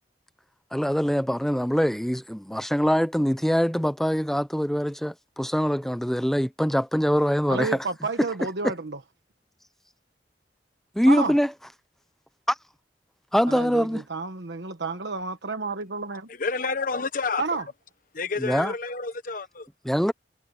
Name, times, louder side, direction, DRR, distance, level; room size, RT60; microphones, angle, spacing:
voice 1, 0.7-7.8 11.0-11.5 12.5-12.6 13.3-14.0 18.4-18.7 19.8-20.1, equal, ahead, 0.8 m, -23 dB
voice 2, 7.5-9.0 11.1-11.3 13.5-16.3 17.4-17.7, right 4 dB, 80° right, 1.2 m, -30 dB
voice 3, 16.4-17.4 18.1-19.7, left 4 dB, 50° left, 1.1 m, -29 dB
head